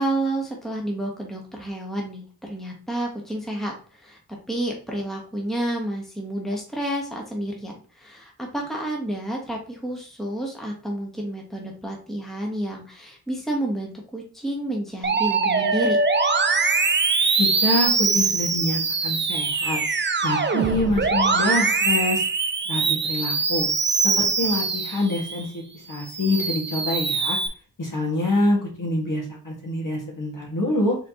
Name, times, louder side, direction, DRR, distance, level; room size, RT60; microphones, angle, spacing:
voice 1, 0.0-4.2 4.5-16.0, right 1 dB, ahead, -1 dB, 1.2 m, -30 dB
Musical instrument, 15.0-25.5 25.9-27.5, right 4 dB, 30° right, 0.6 m, -23 dB
voice 2, 17.3-19.8 20.2-22.2 22.7-23.7 24.0-25.6 25.9-27.4 27.8-31.0, left 1 dB, 55° left, -1 dB, 1.8 m, -25 dB
4.3 x 3.9 x 2.9 m, 0.40 s
wide cardioid pair, 75°, 38 cm